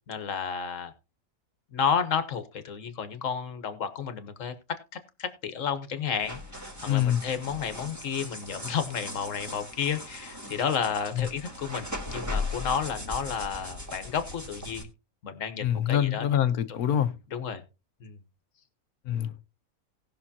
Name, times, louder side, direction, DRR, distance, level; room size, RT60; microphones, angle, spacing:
voice 1, 0.1-0.9 1.7-4.8 5.2-6.4 6.8-14.9 15.2-16.3 16.6-16.7 17.3-17.6 18.0-18.2, left 7 dB, 60° left, 1.5 m, -31 dB
sound 1, 6.2-14.8, left 2 dB, 10° right, 1.8 m, -38 dB
voice 2, 6.9-7.2 11.2-11.3 15.6-17.1 19.1-19.4, left 10 dB, 80° left, 1.3 m, -25 dB
18.5 x 6.3 x 2.8 m
omnidirectional pair, 1.6 m